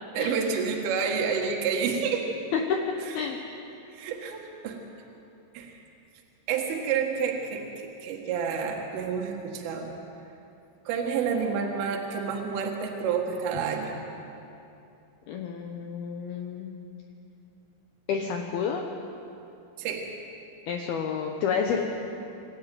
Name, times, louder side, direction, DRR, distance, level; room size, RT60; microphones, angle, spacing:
voice 1, 0.1-2.2 3.1-3.2 3.9-4.8 5.5-5.8 6.5-7.6 8.0-9.9 10.9-14.0 19.8-20.1, right 6 dB, 75° right, 0 dB, 4.2 m, -29 dB
voice 2, 15.3-16.7 18.1-18.8 20.7-21.8, left 6 dB, 80° left, 2 dB, 2.2 m, -30 dB
26.5 x 14.0 x 9.3 m, 2.8 s
omnidirectional pair, 6.0 m